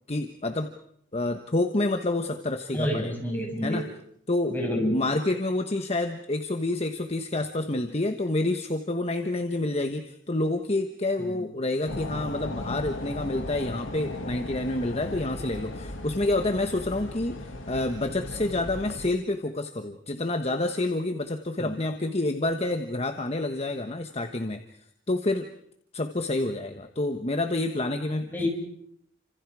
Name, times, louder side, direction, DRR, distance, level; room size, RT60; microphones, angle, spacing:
voice 1, 0.1-0.7 1.1-3.1 3.6-3.9 4.3-4.5 4.9-24.6 25.1-25.5 25.9-28.5, left 2 dB, 30° left, 6 dB, 1.2 m, -28 dB
voice 2, 2.7-3.8 4.5-5.0 11.2-11.3 21.6-21.7 28.3-28.5, equal, 10° left, 0 dB, 6.6 m, -28 dB
sound 1, 11.9-19.1, left 1 dB, 75° left, 2.3 m, -37 dB
30.0 x 26.5 x 4.9 m, 0.70 s
head